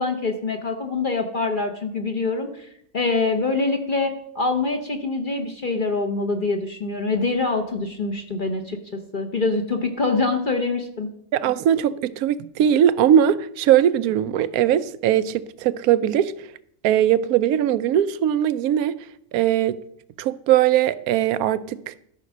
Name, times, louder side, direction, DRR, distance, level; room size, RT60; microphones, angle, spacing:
voice 1, 0.0-2.7 2.9-8.8 9.1-11.1, left 3 dB, 40° left, 1.0 m, -24 dB
voice 2, 11.3-16.5 16.8-19.0 19.3-19.8 20.2-21.9, right 10 dB, 85° right, 1.1 m, -20 dB
13.5 x 5.2 x 6.1 m
omnidirectional pair, 1.5 m